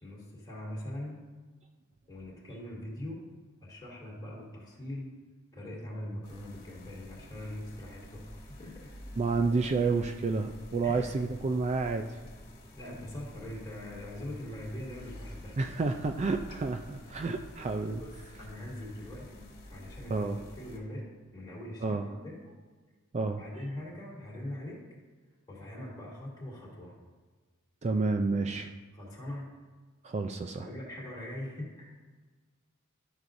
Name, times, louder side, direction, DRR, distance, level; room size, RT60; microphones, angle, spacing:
voice 1, 0.0-1.2 2.1-3.2 3.6-5.1 5.5-8.9 10.8-11.1 12.7-15.6 16.5-16.6 18.0-20.3 20.6-22.4 23.2-24.8 25.5-27.0 28.9-29.5 30.6-32.0, left 1 dB, 20° left, -6 dB, 2.7 m, -42 dB
sound 1, 6.2-20.8, left 1 dB, 45° left, 2.1 m, -49 dB
voice 2, 9.2-12.1 15.6-18.0 20.1-20.4 21.8-22.0 23.1-23.4 27.8-28.7 30.0-30.7, right 3 dB, 30° right, 5 dB, 0.4 m, -30 dB
12.5 x 6.4 x 2.6 m, 1.4 s
head